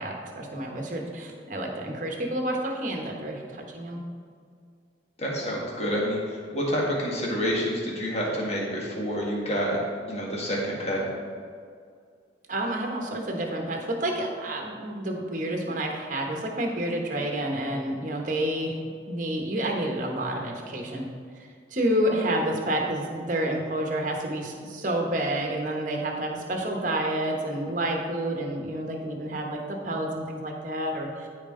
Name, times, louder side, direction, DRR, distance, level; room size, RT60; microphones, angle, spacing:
voice 1, 0.0-4.0 12.5-18.8 19.1-21.1 21.7-31.3, right 1 dB, 40° right, 1 dB, 1.2 m, -29 dB
voice 2, 5.2-9.8 10.0-11.1, equal, 35° left, -3 dB, 1.7 m, -28 dB
13.5 x 4.7 x 3.8 m, 2.2 s
head